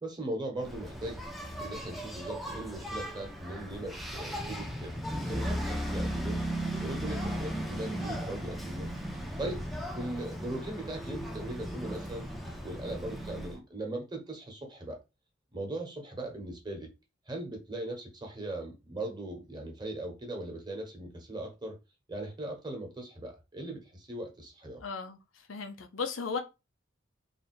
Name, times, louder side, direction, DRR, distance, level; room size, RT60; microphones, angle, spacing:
voice 1, 0.0-1.2 1.6-6.4 6.8-12.3 12.6-15.0 15.5-16.9 17.3-21.8 22.1-24.8, right 1 dB, 20° right, 1.1 m, -39 dB
Engine, 0.6-13.6, equal, ahead, 0.6 m, -36 dB
voice 2, 24.8-26.4, left 5 dB, 90° left, 0.7 m, -36 dB
3.4 x 2.4 x 4.3 m
head